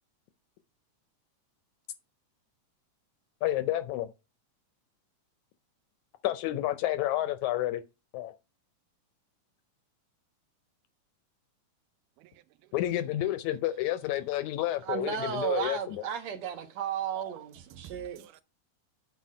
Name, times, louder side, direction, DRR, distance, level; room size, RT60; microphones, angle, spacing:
voice 1, 3.4-4.1 6.2-7.8 8.1-8.3 12.7-16.0, left 14 dB, 80° left, 1.8 m, -30 dB
voice 2, 14.9-18.3, right 8 dB, 70° right, 1.8 m, -34 dB
voice 3, 17.2-18.4, right 9 dB, 85° right, 2.2 m, -50 dB
8.3 x 4.2 x 4.8 m
omnidirectional pair, 3.6 m